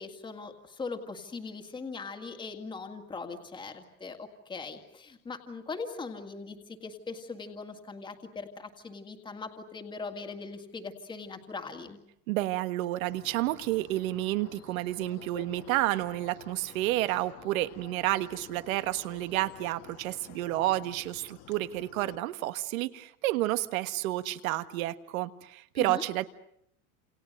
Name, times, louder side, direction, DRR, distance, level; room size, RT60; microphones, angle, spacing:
voice 1, 0.0-12.0 25.8-26.0, left 4 dB, 10° left, 5 dB, 2.0 m, -40 dB
voice 2, 12.3-26.2, right 16 dB, 70° right, 11 dB, 1.6 m, -30 dB
sound 1, 13.0-22.2, left 11 dB, 35° left, 1.7 m, -51 dB
30.0 x 28.5 x 6.6 m, 0.73 s
supercardioid pair, 170°, 43 cm